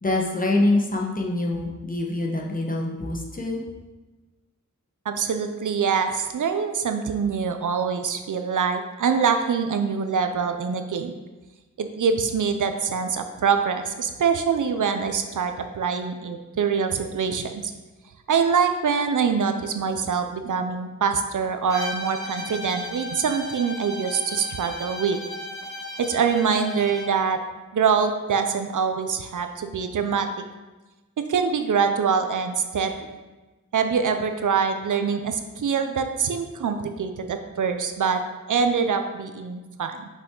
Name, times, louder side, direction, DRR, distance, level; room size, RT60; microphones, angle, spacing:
voice 1, 0.0-3.6, left 2 dB, 25° left, -1 dB, 1.1 m, -25 dB
voice 2, 5.1-11.1 11.8-17.7 18.3-25.2 26.0-27.4 27.7-30.3 31.2-33.1 33.7-38.2 38.5-40.1, right 6 dB, 70° right, 7 dB, 0.6 m, -24 dB
Bowed string instrument, 21.7-27.2, equal, 10° left, 1.5 m, -35 dB
6.0 x 5.6 x 3.8 m, 1.2 s
wide cardioid pair, 75°, 32 cm